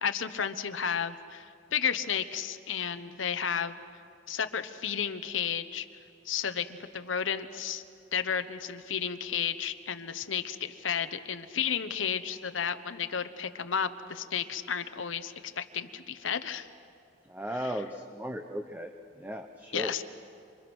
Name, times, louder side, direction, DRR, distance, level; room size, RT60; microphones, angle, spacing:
voice 1, 0.0-3.8 4.3-5.9 6.2-7.8 8.1-16.7 17.5-17.8 19.7-20.0, left 7 dB, 85° left, 10 dB, 1.0 m, -32 dB
voice 2, 17.3-18.9 19.2-19.9, equal, 10° right, 6 dB, 0.7 m, -36 dB
27.5 x 25.5 x 6.2 m, 2.5 s
head